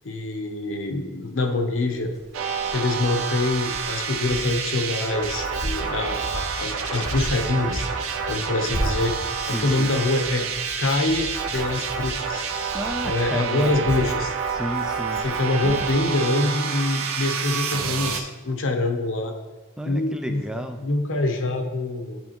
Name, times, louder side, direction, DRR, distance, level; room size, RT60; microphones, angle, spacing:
voice 1, 0.0-2.1 2.5-7.9 8.3-9.1 9.5-10.5 10.8-12.5 13.0-14.3 15.2-19.3 19.8-20.4 20.8-22.2, left 2 dB, 60° left, 5 dB, 0.7 m, -25 dB
Hands, 1.9-15.9, equal, 50° right, 1.7 m, -36 dB
sound 1, 2.3-18.2, right 6 dB, 65° right, 0.6 m, -28 dB
voice 2, 9.4-9.9 12.7-13.9 14.5-15.2 15.6-15.8 19.8-20.8, equal, 5° right, 6 dB, 0.3 m, -32 dB
10.5 x 3.5 x 2.9 m, 1.3 s
head